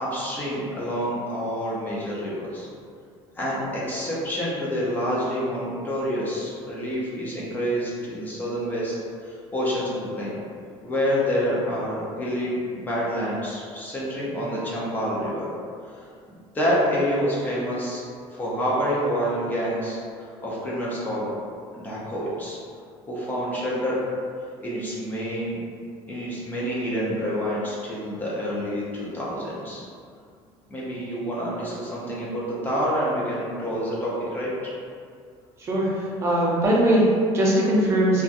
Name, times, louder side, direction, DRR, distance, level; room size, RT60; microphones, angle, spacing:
voice 1, 0.0-2.7 3.4-8.9 9.2-10.3 10.8-15.5 15.9-16.1 16.5-18.0 18.3-21.3 21.7-22.6 23.1-24.0 24.6-25.6 26.0-29.8 30.7-34.5, equal, 15° left, -7 dB, 0.5 m, -27 dB
voice 2, 35.6-38.2, right 1 dB, 25° right, -5 dB, 0.5 m, -21 dB
2.8 x 2.3 x 2.5 m, 2.3 s
cardioid pair, 165°, 10 cm